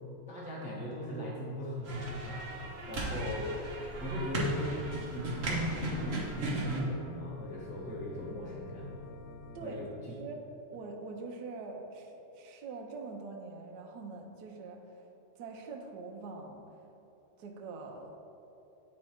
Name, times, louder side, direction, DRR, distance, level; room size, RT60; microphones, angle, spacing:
voice 1, 0.3-3.6 4.0-4.8 5.1-9.1 9.6-9.9, equal, 10° right, -6 dB, 0.5 m, -38 dB
sound 1, 1.8-6.8, right 1 dB, 45° right, 0.8 m, -36 dB
Organ, 3.8-9.6, left 2 dB, 65° left, 0.7 m, -49 dB
voice 2, 10.7-14.8 15.4-16.7 17.4-18.2, right 3 dB, 70° right, 2 dB, 1.1 m, -44 dB
9.1 x 3.2 x 4.4 m, 2.8 s
omnidirectional pair, 2.4 m